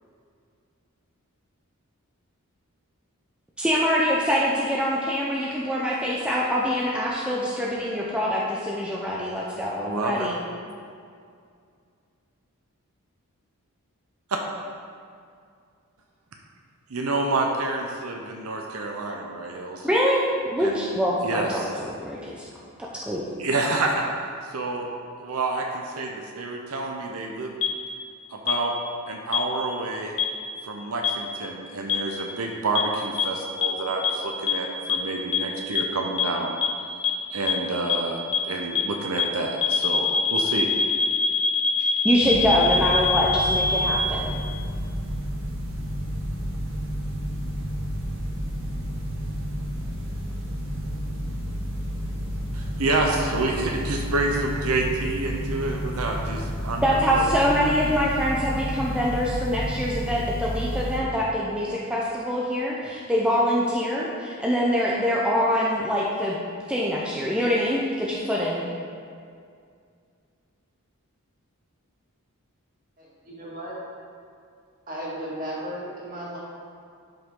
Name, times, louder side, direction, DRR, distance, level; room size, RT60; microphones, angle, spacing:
voice 1, 3.6-10.4 19.8-21.6 22.0-22.5 22.8-23.2 42.0-44.3 56.8-66.4 66.7-68.6, equal, 5° right, -5 dB, 0.6 m, -24 dB
voice 2, 9.8-10.3 14.3-14.4 16.9-19.9 20.6-20.9 21.2-21.7 23.4-24.0 24.4-24.8 25.2-27.5 28.3-28.7 29.1-30.1 30.6-36.5 37.3-38.2 38.4-40.7 52.5-56.8 57.1-57.3, right 2 dB, 80° right, 1 dB, 0.7 m, -28 dB
sound 1, 27.6-27.7 28.5-28.6 29.3-29.4 30.2-30.3 31.0-31.1 31.9-32.0 32.8-32.9 33.2-33.3 33.6-33.7 34.0-34.1 34.5-34.6 34.9-35.0 35.3-35.4 35.8-35.9 36.2-36.3 36.6-36.7 37.0-37.1 37.5-37.6 37.9-38.0 38.3-38.4 38.8-38.9 39.2-39.3 39.6-44.0, left 5 dB, 60° left, 0.9 m, -22 dB
sound 2, 42.2-61.0, equal, 60° right, 1.8 m, -31 dB
voice 3, 73.0-73.8 74.9-76.4, equal, 40° right, -6 dB, 2.3 m, -35 dB
11.5 x 5.5 x 3.7 m, 2.3 s
head